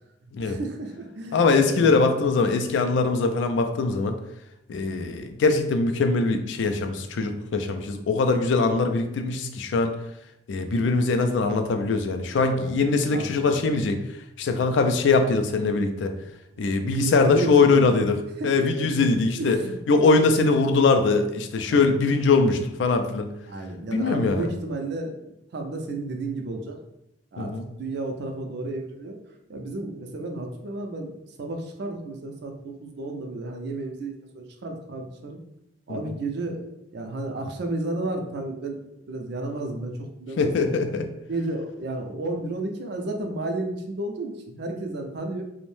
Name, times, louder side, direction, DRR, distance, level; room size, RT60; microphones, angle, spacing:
voice 1, 0.4-2.0 12.6-12.8 13.1-13.6 16.5-17.8 18.4-18.5 19.4-19.8 21.7-21.9 23.5-26.8 27.3-29.2 29.5-35.4 35.9-36.7 36.9-38.8 39.1-40.8 41.3-45.4, right 2 dB, 65° right, 3 dB, 0.4 m, -32 dB
voice 2, 1.3-4.2 4.7-9.9 10.5-14.0 14.4-16.1 16.6-18.2 18.4-19.6 19.9-23.3 23.9-24.5 27.4-27.6 35.9-36.1 40.4-41.1, left 3 dB, 85° left, 6 dB, 0.3 m, -22 dB
2.5 x 2.1 x 3.1 m, 0.84 s
head